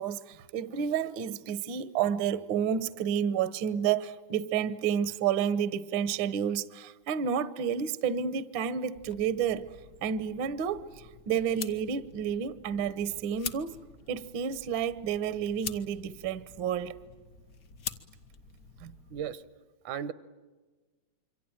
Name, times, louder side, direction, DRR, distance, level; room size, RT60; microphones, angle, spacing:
voice 1, 0.0-9.7 10.0-10.9 11.3-13.8 14.1-17.0 18.8-18.9, right 8 dB, 60° right, 1.3 m, -30 dB
sound 1, 8.9-19.3, left 6 dB, 85° left, 0.7 m, -45 dB
voice 2, 19.1-19.4 19.8-20.1, right 9 dB, 80° right, 2.5 m, -35 dB
27.0 x 24.5 x 9.0 m
omnidirectional pair, 3.5 m